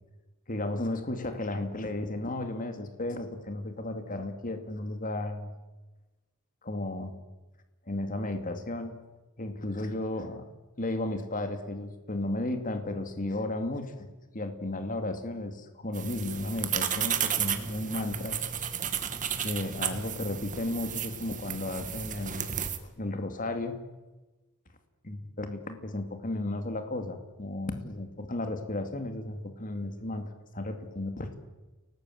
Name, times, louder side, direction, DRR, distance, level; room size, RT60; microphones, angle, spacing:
voice 1, 0.5-5.5 6.6-7.1 7.9-9.0 9.4-10.5 10.8-14.1 14.3-18.4 19.4-22.5 22.8-23.8 25.0-31.4, left 2 dB, 40° left, 7 dB, 2.4 m, -34 dB
sound 1, 15.9-22.8, right 8 dB, 35° right, 1.9 m, -33 dB
29.5 x 18.5 x 7.6 m, 1.1 s
head